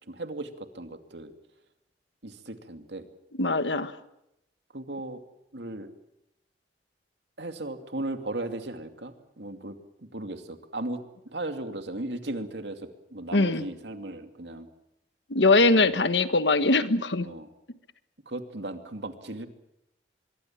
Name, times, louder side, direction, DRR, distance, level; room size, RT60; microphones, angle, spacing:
voice 1, 0.0-1.3 2.2-3.1 4.7-5.2 5.5-5.9 7.4-14.7 15.7-16.0 17.2-17.5 18.3-19.5, right 2 dB, 70° right, 7 dB, 2.6 m, -36 dB
voice 2, 3.4-4.0 13.3-13.6 15.3-17.3, left 3 dB, 80° left, 11 dB, 1.5 m, -22 dB
25.0 x 22.5 x 7.5 m, 0.83 s
head